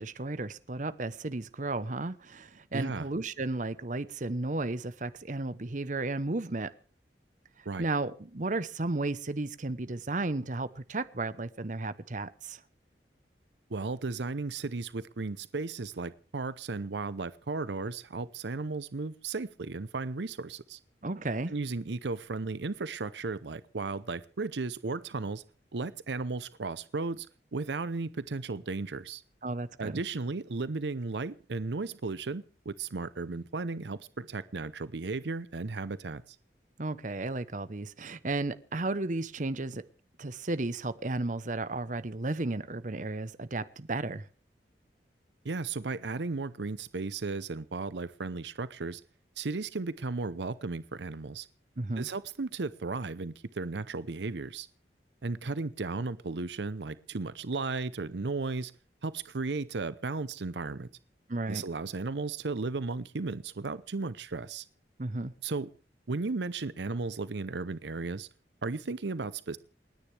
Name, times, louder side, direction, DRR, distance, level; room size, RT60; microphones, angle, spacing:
voice 1, 0.0-6.7 7.8-12.6 21.0-21.5 29.4-30.0 36.8-39.8 40.2-44.2 51.8-52.1 61.3-61.6 65.0-65.3, right 2 dB, 45° right, 0.9 m, -33 dB
voice 2, 2.7-3.1 7.7-7.9 13.7-20.8 21.5-25.4 25.7-27.3 27.5-29.2 29.8-36.4 45.4-49.0 49.4-51.5 52.0-54.7 55.2-58.7 59.0-60.9 61.5-64.7 65.4-65.7 66.1-68.3 68.6-69.6, right 3 dB, 80° right, 0.7 m, -35 dB
28.5 x 10.0 x 3.4 m
head